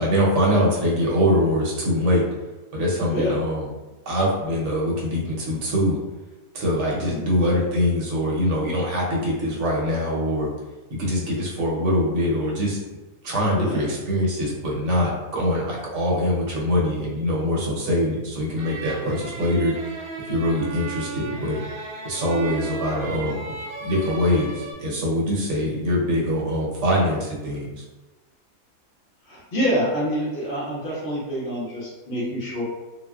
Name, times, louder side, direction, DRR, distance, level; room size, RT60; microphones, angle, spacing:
voice 1, 0.0-2.2 2.7-3.7 4.1-6.0 6.5-10.5 10.9-12.8 13.2-19.7 20.3-21.6 22.0-23.5 23.8-27.8, equal, 60° right, -4 dB, 1.0 m, -23 dB
voice 2, 13.6-13.9 23.1-23.3 29.3-32.6, equal, 50° left, -7 dB, 1.3 m, -27 dB
sound 1, 18.6-24.7, right 3 dB, 85° right, 1.2 m, -35 dB
3.8 x 2.2 x 2.3 m, 1.1 s
omnidirectional pair, 1.5 m